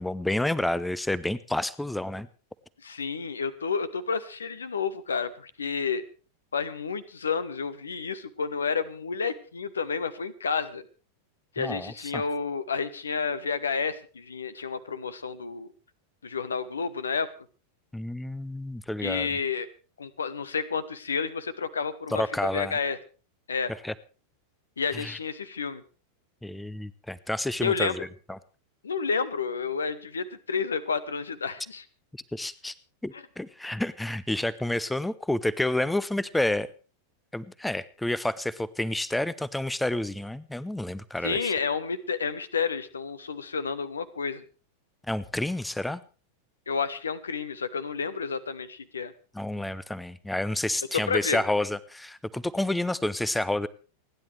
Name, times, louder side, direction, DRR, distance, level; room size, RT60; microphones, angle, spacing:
voice 1, 0.0-2.3 11.6-12.1 17.9-19.3 22.1-22.8 23.8-23.9 24.9-25.2 26.4-28.4 32.3-32.7 33.0-36.7 37.3-41.5 45.1-46.0 49.3-53.7, left 1 dB, 5° left, 19 dB, 0.7 m, -29 dB
voice 2, 2.8-6.0 6.5-10.8 11.5-15.7 16.2-17.3 19.0-19.7 20.0-22.2 22.5-23.0 23.5-23.7 24.8-25.8 27.6-27.9 28.8-31.8 33.1-33.2 41.2-44.4 46.7-49.1 50.9-51.4, left 5 dB, 70° left, 15 dB, 1.1 m, -30 dB
29.5 x 10.5 x 3.4 m, 0.37 s
figure-of-eight pair, 90°, 0 cm